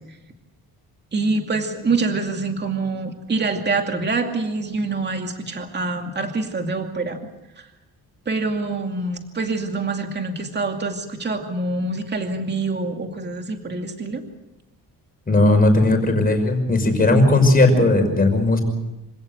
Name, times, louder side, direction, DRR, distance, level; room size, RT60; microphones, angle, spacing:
voice 1, 1.1-7.2 8.3-14.2, right 3 dB, 30° right, 4 dB, 2.5 m, -25 dB
voice 2, 15.3-18.6, left 2 dB, 25° left, 4 dB, 5.6 m, -16 dB
26.5 x 17.0 x 8.0 m, 0.96 s
cardioid pair, 140°, 37 cm